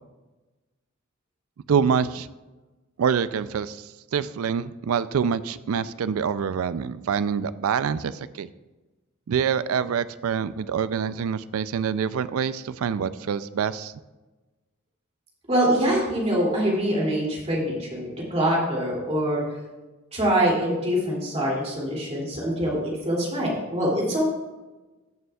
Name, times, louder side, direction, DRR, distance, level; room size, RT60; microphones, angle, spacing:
voice 1, 1.7-2.3 3.0-8.5 9.3-13.9, right 7 dB, 75° right, 15 dB, 0.4 m, -26 dB
voice 2, 15.5-19.4 20.1-22.8 23.0-24.2, equal, 30° right, -3 dB, 2.6 m, -24 dB
15.0 x 6.8 x 2.3 m, 1.2 s
head